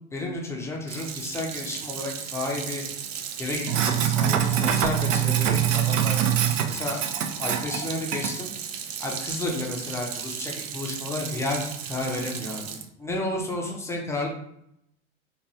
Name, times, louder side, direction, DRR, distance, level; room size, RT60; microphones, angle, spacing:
voice 1, 0.1-2.8 3.4-6.2 6.7-7.1 7.4-8.5 9.0-14.3, left 2 dB, 5° left, -1 dB, 0.5 m, -32 dB
Sink (filling or washing), 0.9-12.8, right 9 dB, 75° right, 0.5 m, -27 dB
3.0 x 2.2 x 2.6 m, 0.75 s
hypercardioid pair, 95°, 38 cm